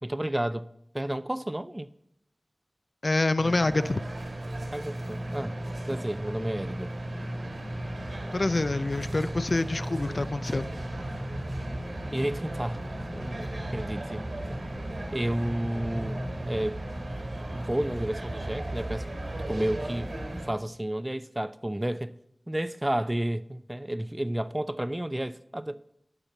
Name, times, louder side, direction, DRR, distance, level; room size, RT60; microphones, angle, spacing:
voice 1, 0.0-0.7 0.9-1.9 4.7-5.5 5.9-6.9 12.1-12.9 13.1-13.5 13.7-14.2 15.1-16.2 16.5-16.8 17.5-19.1 19.4-20.1 20.4-22.1 22.5-25.8, right 1 dB, 20° right, 0.4 m, -31 dB
voice 2, 3.0-4.0 8.3-10.7, left 2 dB, 55° left, 0.4 m, -26 dB
sound 1, 3.4-20.5, right 1 dB, 75° right, 1.6 m, -35 dB
9.8 x 5.8 x 6.8 m
wide cardioid pair, 65°, 0 cm